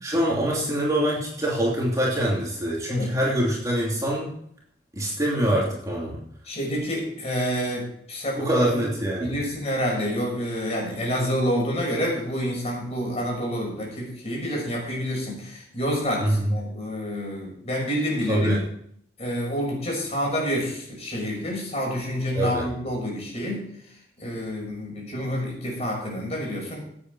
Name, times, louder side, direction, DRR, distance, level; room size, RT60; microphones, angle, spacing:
voice 1, 0.0-4.3 4.9-6.2 8.4-9.4 16.2-16.5 18.3-18.6 22.3-22.7, right 1 dB, 20° right, -4 dB, 2.9 m, -24 dB
voice 2, 6.5-8.9 9.2-18.6 19.2-23.6 24.2-26.8, equal, 35° left, -2 dB, 6.0 m, -28 dB
16.0 x 8.7 x 4.8 m, 0.69 s
head